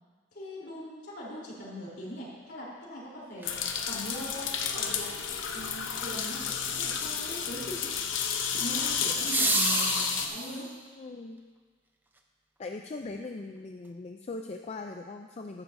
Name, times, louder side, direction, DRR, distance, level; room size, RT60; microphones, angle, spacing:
voice 1, 0.3-5.1 5.5-8.0 8.5-10.7, equal, 60° left, -5 dB, 3.5 m, -41 dB
sound 1, 3.4-10.3, left 7 dB, 75° left, 0.8 m, -31 dB
sound 2, 3.4-3.5 9.0-10.8 13.0-13.1, right 2 dB, 10° right, 0.6 m, -29 dB
voice 2, 11.0-11.4 12.6-15.6, left 3 dB, 35° left, 4 dB, 0.4 m, -40 dB
14.5 x 11.5 x 2.6 m, 1.5 s
head